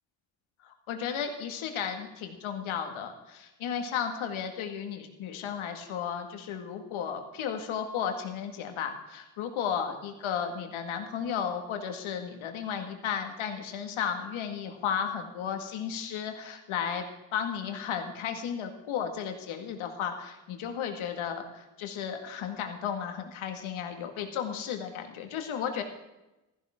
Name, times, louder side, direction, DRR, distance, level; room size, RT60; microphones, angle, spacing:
voice 1, 0.6-17.0 17.3-25.8, left 8 dB, 70° left, 5 dB, 2.2 m, -34 dB
15.5 x 14.5 x 3.8 m, 0.98 s
hypercardioid pair, 50°, 50 cm